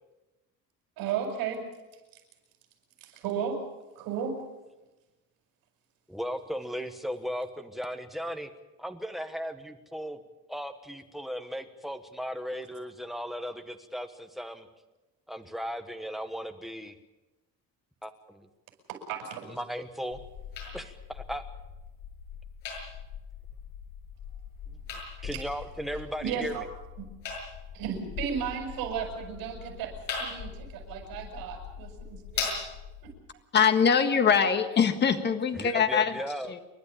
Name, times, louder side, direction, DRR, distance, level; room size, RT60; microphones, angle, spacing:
voice 1, 1.0-1.6 3.0-3.6 4.0-4.3 18.9-19.5 25.3-25.4 26.2-26.6 27.0-27.1 27.7-32.5 33.0-33.1, right 7 dB, 80° right, 2 dB, 7.3 m, -34 dB
voice 2, 6.1-8.5 8.8-10.2 10.5-14.7 15.3-16.9 18.0-18.5 19.4-20.2 20.7-21.4 25.2-26.7 35.5-36.5, equal, ahead, 8 dB, 1.2 m, -36 dB
sound 1, 20.1-33.1, left 5 dB, 75° left, 7.7 m, -40 dB
voice 3, 33.5-36.1 36.5-36.6, left 7 dB, 30° left, 8 dB, 1.6 m, -23 dB
29.0 x 12.0 x 8.6 m, 1.1 s
cardioid pair, 170°, 35 cm